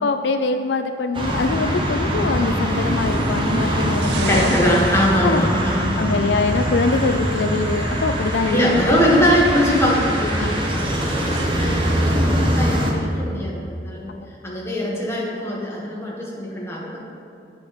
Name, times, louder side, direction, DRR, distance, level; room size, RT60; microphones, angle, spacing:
voice 1, 0.0-4.6 5.2-5.4 6.0-8.6 10.4-10.6 12.3-12.4, left 4 dB, 75° left, 8 dB, 0.4 m, -23 dB
sound 1, 1.1-12.9, equal, 30° right, 1.2 m, -23 dB
sound 2, 2.6-5.9 6.9-7.0, right 3 dB, 65° right, 0.8 m, -33 dB
voice 2, 4.3-6.2 8.5-14.2 14.4-17.0, equal, 15° left, -3 dB, 1.7 m, -22 dB
sound 3, 6.4-12.2, right 3 dB, 90° right, 1.0 m, -39 dB
7.9 x 7.2 x 6.1 m, 2.6 s
head